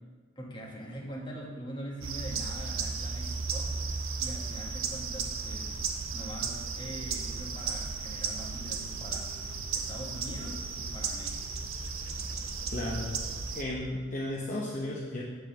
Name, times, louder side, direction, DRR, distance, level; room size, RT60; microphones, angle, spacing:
voice 1, 0.3-3.8 4.2-5.9 6.1-9.3 9.7-11.5, equal, 20° left, -3 dB, 1.5 m, -43 dB
sound 1, 2.0-13.6, right 4 dB, 70° right, 0.7 m, -35 dB
sound 2, 8.2-13.9, left 1 dB, 20° right, 1.6 m, -53 dB
voice 2, 12.7-13.1 13.5-15.2, left 1 dB, 40° left, -4 dB, 0.9 m, -34 dB
8.6 x 4.1 x 6.7 m, 1.5 s
head